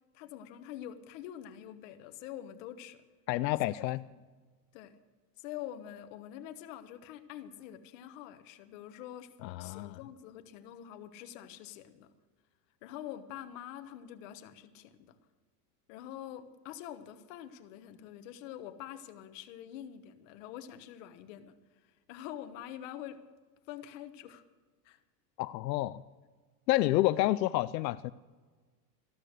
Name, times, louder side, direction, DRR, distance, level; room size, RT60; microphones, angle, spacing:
voice 1, 0.1-3.0 3.8-4.2 4.7-5.0 5.4-9.3 9.6-12.1 12.8-15.2 15.9-21.5 21.8-23.2 23.7-24.4 24.8-25.0, left 11 dB, 50° left, 9 dB, 1.3 m, -46 dB
voice 2, 3.3-4.0 9.4-10.0 25.4-26.0 26.7-28.1, left 16 dB, 85° left, 14 dB, 0.6 m, -29 dB
14.0 x 12.5 x 6.6 m, 1.4 s
supercardioid pair, 160°, 49 cm